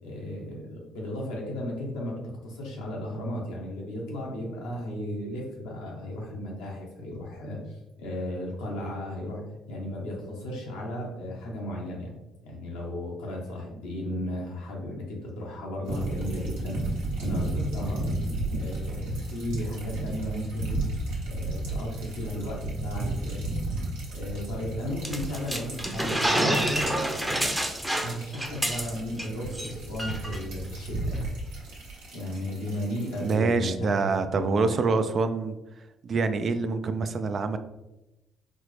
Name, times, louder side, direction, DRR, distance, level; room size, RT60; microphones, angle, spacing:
voice 1, 0.0-12.1 12.4-16.8 17.2-18.1 18.6-20.9 21.2-23.5 24.1-27.0 28.0-31.3 32.1-34.8, left 1 dB, 85° left, -2 dB, 0.9 m, -35 dB
sound 1, 15.8-33.3, right 2 dB, 85° right, 0.9 m, -34 dB
sound 2, 25.0-29.3 29.5-29.7 30.0-30.4, right 1 dB, 10° right, 0.6 m, -28 dB
voice 2, 33.2-35.6 36.0-37.6, right 4 dB, 50° right, 9 dB, 0.3 m, -26 dB
4.2 x 2.0 x 3.1 m, 0.99 s
supercardioid pair, 60°, 0 cm